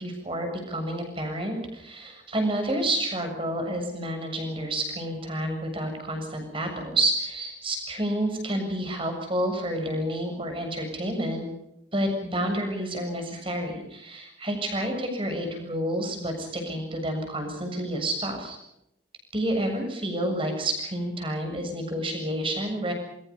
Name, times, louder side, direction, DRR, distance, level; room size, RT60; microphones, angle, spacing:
voice 1, 0.0-11.5 11.9-18.6 19.3-22.9, right 1 dB, 30° right, 4 dB, 7.2 m, -29 dB
28.0 x 23.5 x 5.5 m, 0.80 s
head